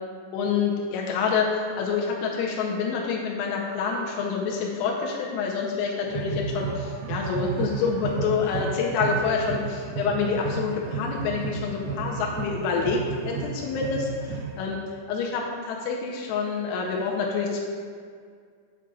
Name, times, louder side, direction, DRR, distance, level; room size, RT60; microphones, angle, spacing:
voice 1, 0.3-14.8 15.1-17.6, left 5 dB, 85° left, -1 dB, 3.3 m, -27 dB
sound 1, 6.1-14.9, right 5 dB, 85° right, 3.3 m, -33 dB
9.1 x 6.0 x 2.3 m, 2.1 s
omnidirectional pair, 5.9 m